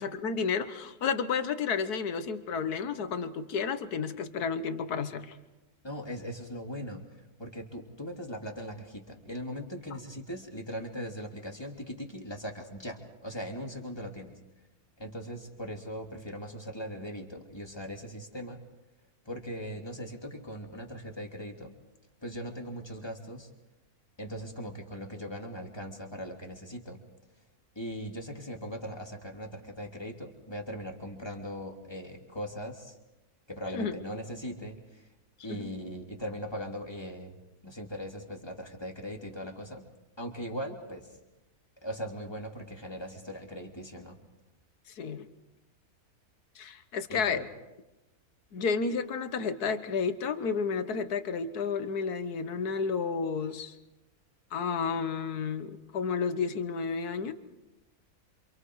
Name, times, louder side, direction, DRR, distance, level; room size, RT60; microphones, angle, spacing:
voice 1, 0.0-5.4 33.7-34.0 35.5-35.7 44.9-45.3 46.6-47.4 48.5-53.7 54.5-57.3, left 5 dB, 75° left, 10 dB, 1.7 m, -31 dB
voice 2, 5.8-14.4 15.0-18.6 19.2-21.8 22.2-23.5 24.2-27.0 27.7-33.0 33.5-35.1 35.4-39.9 40.2-41.1 41.8-44.2 47.1-47.5, equal, 15° left, 1 dB, 2.9 m, -40 dB
28.0 x 27.0 x 4.8 m, 1.0 s
omnidirectional pair, 1.6 m